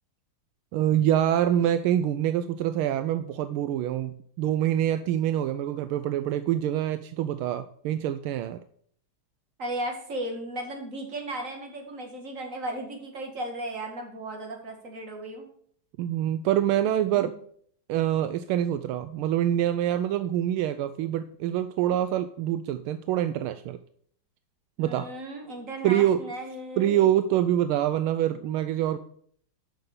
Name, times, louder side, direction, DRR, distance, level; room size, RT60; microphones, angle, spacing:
voice 1, 0.7-8.6 16.0-17.3 17.9-23.8 24.8-25.1 25.8-26.2 26.8-29.0, right 11 dB, 80° right, 11 dB, 1.4 m, -25 dB
voice 2, 9.6-15.4 24.8-27.0, right 1 dB, 40° right, 2 dB, 2.4 m, -35 dB
9.6 x 6.3 x 6.7 m, 0.62 s
omnidirectional pair, 2.3 m